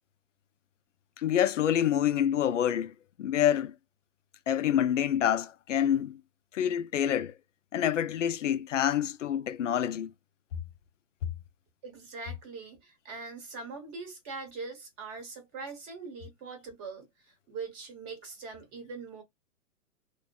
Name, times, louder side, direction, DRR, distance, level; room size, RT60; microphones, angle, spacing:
voice 1, 1.2-3.7 4.5-6.2 6.5-7.3 7.7-10.1, left 10 dB, 60° left, 0.5 m, -27 dB
voice 2, 11.8-19.2, right 4 dB, 25° right, 0.9 m, -42 dB
2.6 x 2.2 x 2.2 m
figure-of-eight pair, 120°, 43 cm